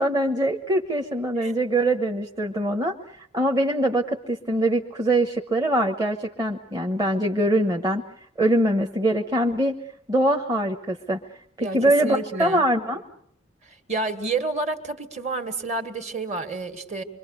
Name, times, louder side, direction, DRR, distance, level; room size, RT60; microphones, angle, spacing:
voice 1, 0.0-8.0 8.4-9.8 10.1-11.2 11.6-13.0, right 1 dB, 20° right, 2 dB, 1.1 m, -23 dB
voice 2, 11.6-12.7 13.6-17.0, right 3 dB, 35° right, 7 dB, 2.1 m, -29 dB
27.0 x 23.5 x 6.6 m, 0.65 s
head